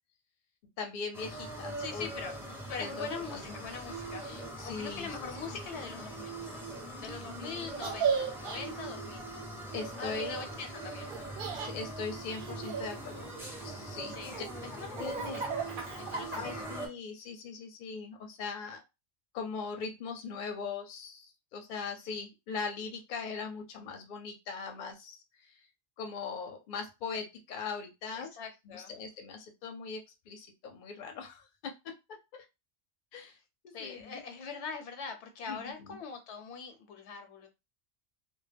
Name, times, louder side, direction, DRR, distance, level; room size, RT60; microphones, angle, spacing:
voice 1, 0.8-2.2 2.8-3.9 4.2-5.6 7.1-7.2 9.7-10.4 11.5-13.3 13.6-14.4 15.0-15.4 16.0-18.8 19.3-25.2 25.5-25.6 26.0-28.3 28.6-30.0 30.3-31.7 32.3-32.4 33.1-33.4 33.6-34.2 35.5-36.0, left 5 dB, 55° left, 4 dB, 0.6 m, -40 dB
sound 1, 1.1-16.9, right 2 dB, 5° right, 0.5 m, -42 dB
voice 2, 1.8-2.4 2.7-6.5 7.0-9.2 10.0-11.1 14.1-14.4 14.8-16.7 28.2-28.9 33.7-37.5, left 5 dB, 80° left, 6 dB, 0.9 m, -42 dB
Laughter, 7.8-8.6 11.1-11.7 12.3-13.6 14.1-16.7, right 6 dB, 55° right, 0.7 m, -35 dB
2.2 x 2.0 x 3.3 m, 0.25 s
omnidirectional pair, 1.2 m